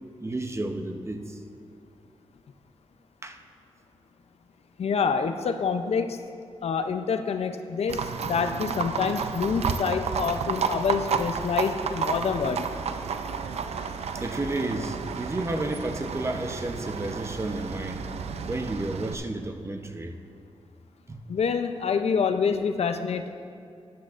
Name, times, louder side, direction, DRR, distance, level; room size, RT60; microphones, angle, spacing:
voice 1, 0.2-1.4 3.2-3.4 14.1-18.0 18.5-20.1 21.1-21.2, right 2 dB, 25° right, 5 dB, 0.7 m, -32 dB
voice 2, 4.8-6.2 6.6-12.7 21.3-23.3, left 6 dB, 75° left, 8 dB, 0.5 m, -27 dB
Livestock farm animals working animals, 7.9-19.1, right 6 dB, 75° right, 0.5 m, -31 dB
14.0 x 10.5 x 2.5 m, 2.4 s
cardioid pair, 80°, 11 cm